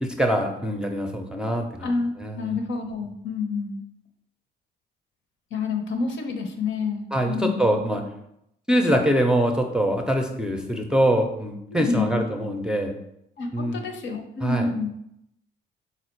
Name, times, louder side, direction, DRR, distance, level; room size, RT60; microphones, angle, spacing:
voice 1, 0.0-1.9 2.2-2.5 7.1-8.0 8.7-12.9 13.5-13.8 14.4-14.7, equal, 5° right, 3 dB, 0.6 m, -24 dB
voice 2, 2.4-3.8 5.5-7.7 11.7-12.2 13.4-14.9, left 4 dB, 70° left, 4 dB, 0.7 m, -28 dB
4.2 x 2.4 x 4.4 m, 0.78 s
cardioid pair, 90°, 20 cm